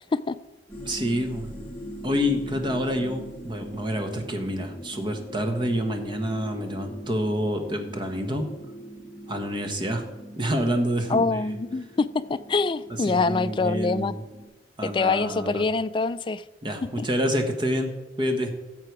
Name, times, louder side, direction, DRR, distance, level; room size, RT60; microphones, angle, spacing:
sound 1, 0.7-14.4, right 1 dB, 10° left, 2.7 m, -42 dB
voice 1, 0.8-1.5 2.0-8.5 9.3-10.0 10.4-11.4 13.1-14.2 14.8-15.6 16.6-18.5, equal, 25° right, 5 dB, 1.2 m, -27 dB
voice 2, 11.1-14.2 14.8-16.4 17.0-17.1, left 4 dB, 30° left, 13 dB, 0.3 m, -25 dB
13.5 x 7.7 x 4.7 m, 1.2 s
head